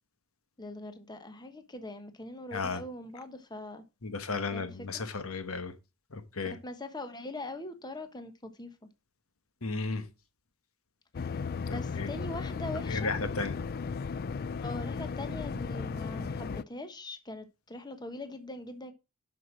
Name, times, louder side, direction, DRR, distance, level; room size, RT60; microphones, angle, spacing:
voice 1, 0.6-3.8 4.5-5.1 6.4-8.7 11.3-11.4 11.7-13.1 14.6-18.9, left 1 dB, 20° left, 1.1 m, -42 dB
voice 2, 4.0-5.7 6.1-6.5 9.6-10.0 11.7-12.1 12.9-13.6, left 4 dB, 70° left, 1.1 m, -34 dB
sound 1, 11.1-16.6, left 5 dB, 45° left, 0.4 m, -35 dB
7.9 x 6.1 x 6.0 m
head